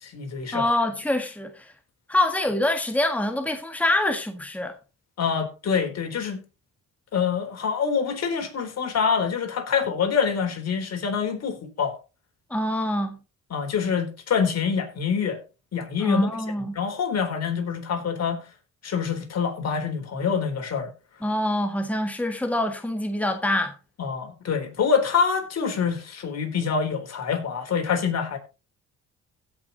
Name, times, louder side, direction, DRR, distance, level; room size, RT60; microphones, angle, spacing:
voice 1, 0.0-0.7 5.2-6.4 7.1-12.0 13.5-15.4 15.7-16.3 16.8-18.4 18.8-20.9 24.0-28.4, left 6 dB, 60° left, 3.9 m, -26 dB
voice 2, 0.5-1.7 2.1-4.7 12.5-13.2 16.0-16.7 21.2-23.7, left 1 dB, 5° left, 1.7 m, -25 dB
16.5 x 6.1 x 4.1 m
cardioid pair, 90°, 30 cm